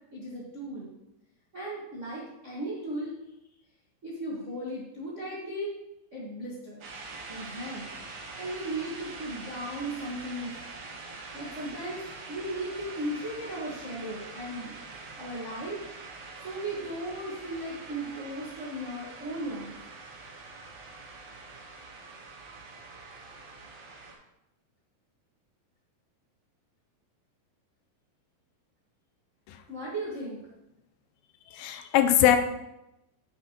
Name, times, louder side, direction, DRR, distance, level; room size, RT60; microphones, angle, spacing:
voice 1, 0.1-0.9 1.5-3.1 4.0-5.7 6.1-6.8 7.3-7.9 8.4-10.6 11.3-12.0 12.3-14.8 15.2-15.8 16.4-19.8 29.7-30.4, right 1 dB, 50° right, -6 dB, 0.8 m, -36 dB
sound 1, 6.8-24.1, right 3 dB, 85° right, 1.0 m, -44 dB
voice 2, 31.5-32.4, left 11 dB, 90° left, 8 dB, 2.6 m, -22 dB
8.8 x 7.8 x 3.0 m, 0.90 s
omnidirectional pair, 4.3 m